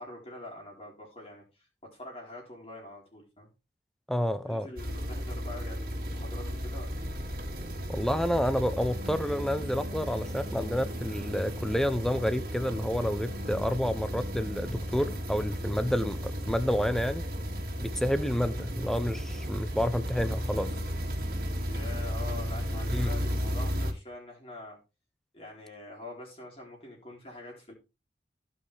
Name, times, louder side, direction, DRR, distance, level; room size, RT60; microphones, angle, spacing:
voice 1, 0.0-3.5 4.5-7.1 21.7-24.8 25.3-27.7, left 2 dB, 30° left, 4.0 m, -45 dB
voice 2, 4.1-4.7 7.9-17.2 17.8-20.7 22.9-23.1, equal, 5° left, 0.6 m, -29 dB
sound 1, 4.8-23.9, equal, 50° right, 2.4 m, -34 dB
16.0 x 5.5 x 3.4 m
head